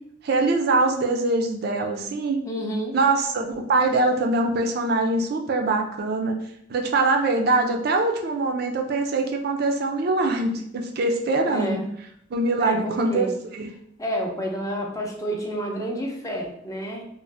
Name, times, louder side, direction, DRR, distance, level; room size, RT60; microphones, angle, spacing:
voice 1, 0.2-2.4 2.9-6.4 6.7-11.8 12.3-13.7, right 2 dB, 55° right, 3 dB, 0.4 m, -23 dB
voice 2, 2.4-2.9 11.5-11.8 12.4-13.3 14.0-17.0, equal, 20° left, 0 dB, 0.5 m, -29 dB
2.5 x 2.1 x 3.2 m, 0.70 s
head